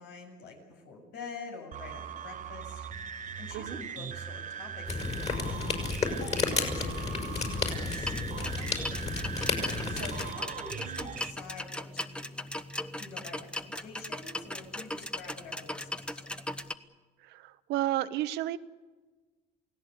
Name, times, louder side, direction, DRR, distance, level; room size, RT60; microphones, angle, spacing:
voice 1, 0.0-8.9 9.9-12.4 13.0-16.3, left 4 dB, 90° left, 3 dB, 7.3 m, -47 dB
sound 1, 1.7-11.3, right 8 dB, 50° right, 1.1 m, -40 dB
sound 2, 4.9-10.3, left 4 dB, 40° left, 5.8 m, -32 dB
sound 3, 7.7-16.7, left 1 dB, 5° left, 1.2 m, -38 dB
voice 2, 17.2-18.6, right 14 dB, 85° right, 12 dB, 1.1 m, -32 dB
28.5 x 17.5 x 8.3 m, 1.3 s
cardioid pair, 110°, 17 cm